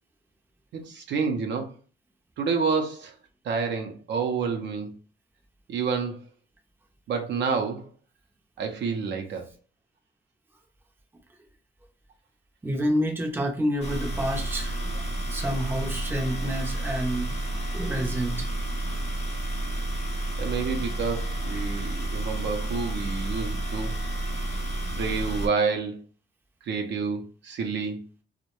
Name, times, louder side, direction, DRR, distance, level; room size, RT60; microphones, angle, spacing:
voice 1, 0.7-1.7 2.4-3.1 3.4-4.9 5.7-6.2 7.1-7.9 8.6-9.4 20.4-23.9 24.9-26.0 26.7-28.0, right 5 dB, 65° right, 0.5 m, -29 dB
voice 2, 12.6-14.8 15.3-17.4 17.7-18.5, equal, 10° right, 0.5 m, -28 dB
sound 1, 13.8-25.5, right 1 dB, 30° left, 0.7 m, -30 dB
2.2 x 2.1 x 2.9 m
cardioid pair, 90°, 20 cm